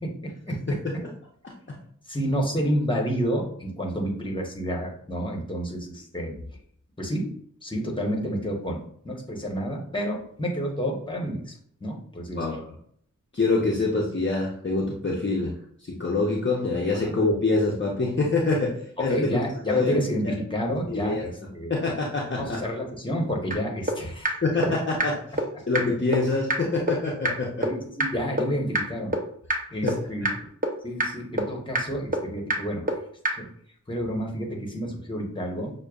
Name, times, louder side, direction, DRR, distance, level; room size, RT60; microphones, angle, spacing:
voice 1, 0.0-0.6 2.1-6.3 7.0-7.3 7.6-11.5 11.8-12.4 17.0-17.1 19.1-21.2 21.5-21.7 22.4-24.4 24.7-24.8 27.6-29.2 29.7-30.5 30.8-33.0 33.3-33.5 33.9-35.7, equal, 15° left, 0 dB, 1.1 m, -29 dB
voice 2, 1.4-1.8 12.3-12.6 13.3-15.5 15.8-19.4 19.7-20.0 20.2-20.3 20.9-21.3 21.7-22.6 24.4-27.7 29.8-30.3, left 3 dB, 35° left, -3 dB, 0.7 m, -26 dB
sound 1, 23.5-23.6 23.9-24.0 24.2-24.3 24.6-24.7 25.0-25.1 25.4-25.5 25.7-25.8 26.1-26.2 26.5-26.6 26.9-27.0 27.2-27.3 27.6-27.7 28.0-28.1 28.4-28.5 28.7-28.8 29.1-29.2 29.5-29.6 29.9-30.0 30.2-30.3 30.6-30.7 31.0-31.1 31.4-31.5 31.7-31.8 32.1-32.2 32.5-32.6 32.9-33.0 33.2-33.3, right 2 dB, 25° right, 0.7 m, -23 dB
6.5 x 2.2 x 2.4 m, 0.64 s
cardioid pair, 45°, 33 cm